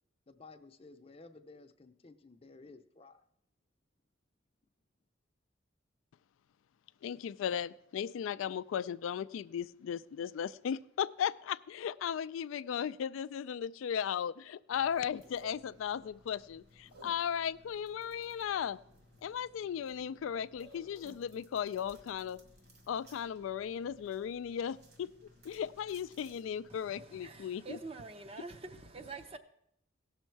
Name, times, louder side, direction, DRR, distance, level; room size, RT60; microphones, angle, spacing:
voice 1, 0.3-3.2, left 3 dB, 30° left, 0.6 m, -55 dB
voice 2, 7.0-18.8 19.2-22.4 22.9-25.1 25.4-27.8, left 8 dB, 90° left, 0.3 m, -36 dB
sound 1, 14.7-26.8, equal, 55° right, 1.9 m, -60 dB
voice 3, 26.7-29.4, right 3 dB, 30° right, 0.6 m, -46 dB
16.5 x 6.3 x 4.5 m
head